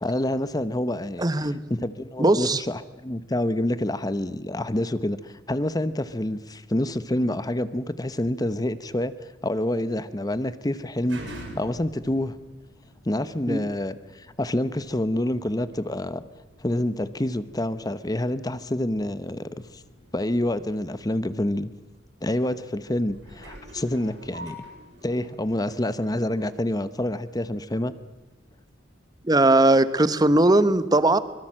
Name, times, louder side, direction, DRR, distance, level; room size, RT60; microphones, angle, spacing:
voice 1, 0.0-1.2 1.7-9.1 9.4-11.2 11.6-12.4 13.0-16.2 16.6-19.8 20.1-21.7 22.2-24.6 25.0-27.9, left 1 dB, 20° left, 14 dB, 0.9 m, -27 dB
voice 2, 1.2-1.6 2.2-2.6 13.5-13.6 29.2-31.2, right 2 dB, 20° right, 13 dB, 1.1 m, -19 dB
sound 1, 10.4-27.7 28.3-28.4, equal, 85° right, 7.2 m, -48 dB
24.5 x 22.0 x 7.6 m, 1.1 s
head